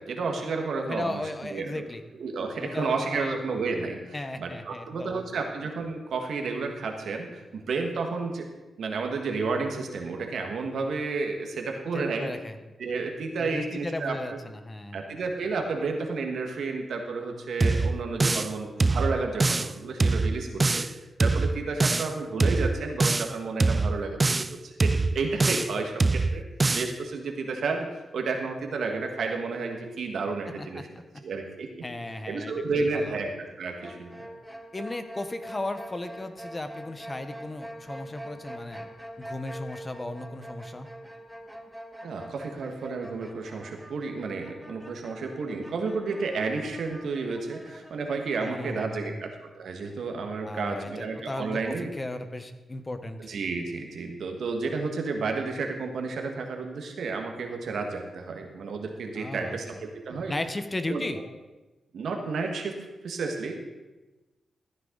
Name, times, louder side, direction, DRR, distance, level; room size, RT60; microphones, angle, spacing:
voice 1, 0.0-1.9 2.2-8.5 8.8-12.3 12.8-14.4 14.9-20.8 21.2-25.9 26.3-26.4 26.7-30.8 31.2-31.7 32.3-33.3 33.6-34.3 42.0-51.9 53.3-60.3 60.9-61.0 61.9-62.7 63.0-63.5, right 4 dB, 80° right, 3 dB, 1.7 m, -31 dB
voice 2, 0.9-2.0 2.6-3.4 4.1-5.4 11.9-12.6 13.4-15.1 20.5-20.7 30.6-31.0 31.8-33.2 34.7-38.8 39.2-40.9 48.4-49.2 50.4-53.2 59.2-59.6 60.3-61.2, left 2 dB, 25° left, 9 dB, 1.0 m, -36 dB
sound 1, 17.6-18.5 18.8-19.7 20.0-20.9 21.2-22.1 22.4-23.3 23.6-24.5 24.8-25.7 26.0-26.9, right 3 dB, 30° right, 0.4 m, -24 dB
sound 2, 33.8-47.9, equal, ahead, 1.4 m, -44 dB
14.5 x 9.6 x 4.0 m, 1.1 s
cardioid pair, 80°, 0 cm